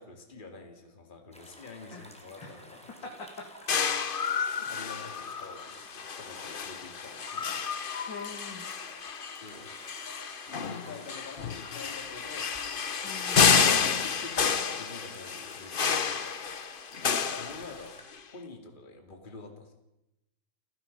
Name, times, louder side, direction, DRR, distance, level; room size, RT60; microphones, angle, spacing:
voice 1, 0.0-2.9 4.6-7.6 9.0-10.2 10.6-12.5 13.0-16.3 17.4-17.9 18.3-19.7, left 3 dB, 20° left, 4 dB, 2.6 m, -47 dB
sound 1, 1.3-18.0, equal, 5° left, 3.1 m, -53 dB
voice 2, 3.0-3.5 4.3-4.5 8.1-8.7 13.0-13.4, left 4 dB, 55° left, 1 dB, 3.2 m, -43 dB
sound 2, 3.7-18.1, left 6 dB, 85° left, 0.4 m, -30 dB
29.5 x 16.5 x 5.4 m, 0.89 s
omnidirectional pair, 2.4 m